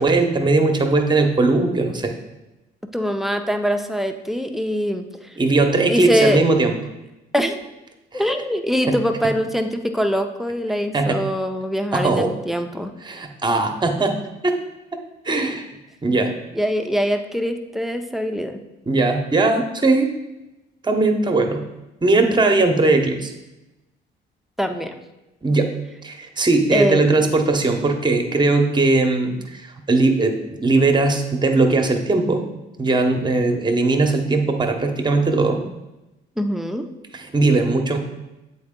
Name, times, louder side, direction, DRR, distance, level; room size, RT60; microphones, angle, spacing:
voice 1, 0.0-2.1 5.4-6.7 8.1-8.2 8.9-9.0 10.9-11.2 11.9-12.3 13.0-14.2 14.4-14.6 15.2-15.7 16.0-16.3 18.9-20.1 20.8-21.6 22.0-23.3 25.4-25.7 26.0-32.4 32.8-35.6 37.1-38.0, right 3 dB, 20° right, 5 dB, 0.9 m, -19 dB
voice 2, 2.9-5.1 5.9-6.4 7.3-7.6 8.1-12.9 16.5-18.6 24.6-25.0 26.7-27.0 36.4-36.9, equal, ahead, 6 dB, 0.6 m, -23 dB
7.8 x 4.3 x 3.7 m, 1.0 s
cardioid pair, 90°, 20 cm